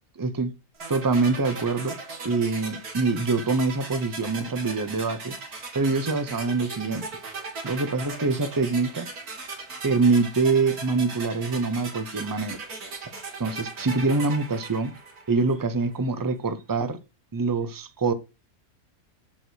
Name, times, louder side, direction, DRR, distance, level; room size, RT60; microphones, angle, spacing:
voice 1, 0.2-0.5 0.9-2.0 2.2-5.4 5.7-7.1 7.6-9.1 9.8-12.6 13.4-14.9 15.3-17.0 17.3-18.1, right 3 dB, 20° right, 0.7 m, -25 dB
sound 1, 0.8-15.7, right 3 dB, 85° right, 2.8 m, -38 dB
8.2 x 5.8 x 6.3 m
omnidirectional pair, 1.5 m